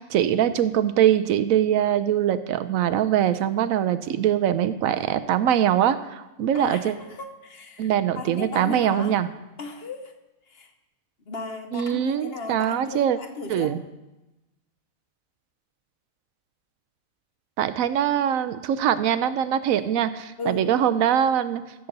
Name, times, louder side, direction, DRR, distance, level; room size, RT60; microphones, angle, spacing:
voice 1, 0.0-6.9 7.8-9.3 11.7-13.2 13.5-13.8 17.6-21.6, right 10 dB, 90° right, 12 dB, 1.0 m, -22 dB
voice 2, 6.5-9.2 9.6-10.2 10.5-10.7 11.3-13.8 20.4-20.7, left 3 dB, 55° left, 7 dB, 0.9 m, -36 dB
14.5 x 6.9 x 3.9 m, 1.0 s
omnidirectional pair, 1.4 m